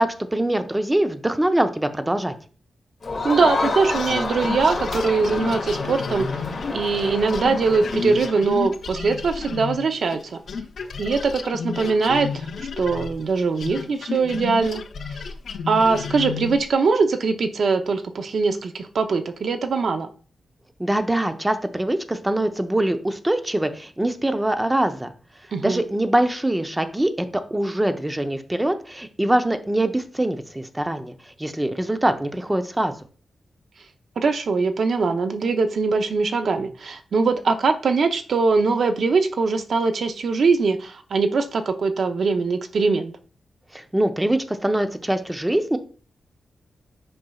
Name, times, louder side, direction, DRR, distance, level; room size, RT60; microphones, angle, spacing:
voice 1, 0.0-2.3 20.8-25.1 25.6-31.1 31.4-32.9 43.7-45.8, right 1 dB, 10° right, 7 dB, 0.6 m, -23 dB
Crowd, 3.0-8.4, left 3 dB, 35° left, 2.0 m, -29 dB
voice 2, 3.2-6.4 6.7-10.4 11.0-12.5 12.8-14.8 15.7-20.1 25.5-25.8 34.2-43.1, right 4 dB, 60° right, 7 dB, 0.6 m, -22 dB
sound 1, 3.9-10.2 10.5-16.7, left 5 dB, 65° left, 0.6 m, -32 dB
7.7 x 5.4 x 2.3 m, 0.39 s
wide cardioid pair, 135°, 0 cm